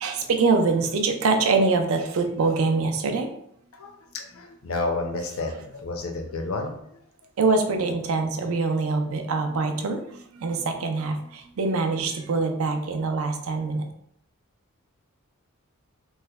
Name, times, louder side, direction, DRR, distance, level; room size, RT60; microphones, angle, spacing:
voice 1, 0.0-3.3 7.4-13.9, right 3 dB, 65° right, 5 dB, 0.4 m, -24 dB
voice 2, 3.7-6.8, left 2 dB, 65° left, 3 dB, 0.6 m, -31 dB
3.1 x 2.1 x 3.4 m, 0.72 s
head